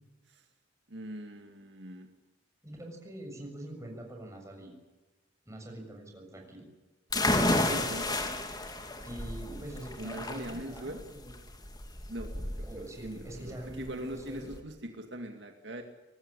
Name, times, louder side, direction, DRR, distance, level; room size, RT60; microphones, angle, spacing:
voice 1, 0.9-2.1 7.4-8.0 9.5-9.6 10.0-11.0 12.1-15.8, right 1 dB, 65° right, 4 dB, 2.3 m, -42 dB
voice 2, 2.6-4.7 5.5-6.7 7.4-7.9 9.0-11.3 12.6-14.5, right 1 dB, 15° right, 2 dB, 7.0 m, -44 dB
sound 1, 7.1-14.6, left 2 dB, 20° left, 2.8 m, -32 dB
24.5 x 18.5 x 10.0 m, 1.2 s
head